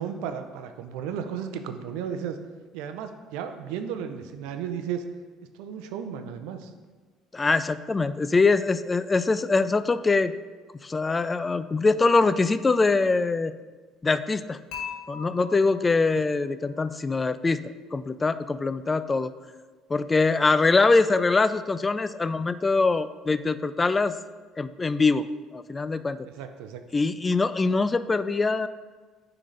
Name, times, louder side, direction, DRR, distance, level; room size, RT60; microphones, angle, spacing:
voice 1, 0.0-2.4 2.7-5.0 5.5-6.7 26.4-26.8, right 8 dB, 80° right, 7 dB, 0.5 m, -34 dB
voice 2, 7.3-10.3 10.8-13.5 14.0-14.6 15.1-17.6 17.9-19.3 19.9-24.1 24.6-25.3 25.5-26.2 26.9-28.7, left 3 dB, 20° left, 13 dB, 0.3 m, -23 dB
Dishes pots and pans / Chink clink, 14.7-16.8, left 7 dB, 65° left, 2.0 m, -40 dB
9.8 x 3.9 x 3.3 m, 1.4 s
supercardioid pair, 90°, 0 cm